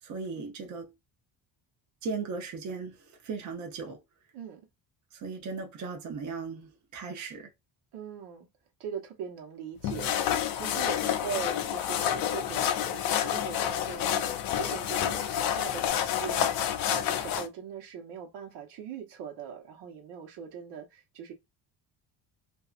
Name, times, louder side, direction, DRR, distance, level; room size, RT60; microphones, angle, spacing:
voice 1, 0.0-0.9 2.0-4.0 5.1-7.5, right 4 dB, 45° right, 0.7 m, -37 dB
voice 2, 7.9-8.5 8.8-10.2 10.5-21.3, right 7 dB, 90° right, 1.1 m, -41 dB
sound 1, 9.8-17.5, left 10 dB, 60° left, 0.5 m, -29 dB
2.6 x 2.3 x 2.4 m
cardioid pair, 145°, 41 cm